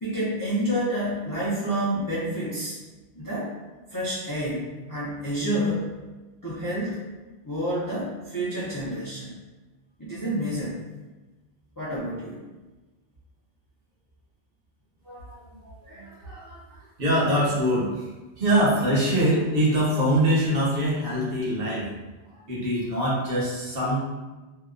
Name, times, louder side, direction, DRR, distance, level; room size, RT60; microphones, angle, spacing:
voice 1, 0.0-2.8 3.1-3.5 3.9-4.6 4.9-5.9 6.4-7.0 7.4-9.3 10.0-10.8 11.8-12.4, equal, 30° left, -9 dB, 0.4 m, -28 dB
voice 2, 15.0-18.1 18.4-21.9 22.3-24.0, right 1 dB, 60° right, -6 dB, 1.0 m, -24 dB
2.7 x 2.1 x 2.4 m, 1.2 s
omnidirectional pair, 1.1 m